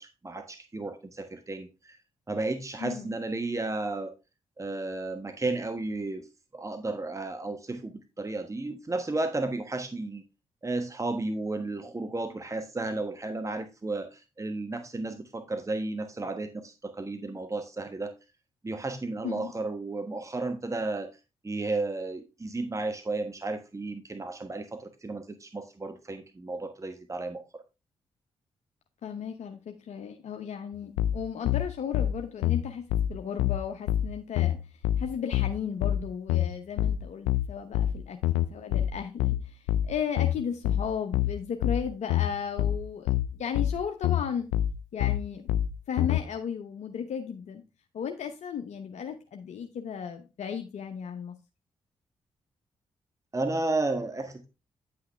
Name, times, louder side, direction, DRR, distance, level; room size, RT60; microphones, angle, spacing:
voice 1, 0.0-2.0 2.3-4.1 4.6-6.3 6.5-7.9 8.2-10.2 10.6-18.1 18.6-21.1 21.4-27.4 53.3-54.5, right 2 dB, 25° right, 8 dB, 1.2 m, -33 dB
voice 2, 2.8-3.2 19.2-19.5 29.0-32.8 33.1-34.6 35.0-44.5 44.9-45.5 45.9-47.6 47.9-51.3, left 7 dB, 65° left, 5 dB, 0.9 m, -35 dB
sound 1, 31.0-46.2, left 12 dB, 90° left, 0.4 m, -27 dB
10.0 x 5.8 x 3.3 m, 0.27 s
hypercardioid pair, 40°, 12 cm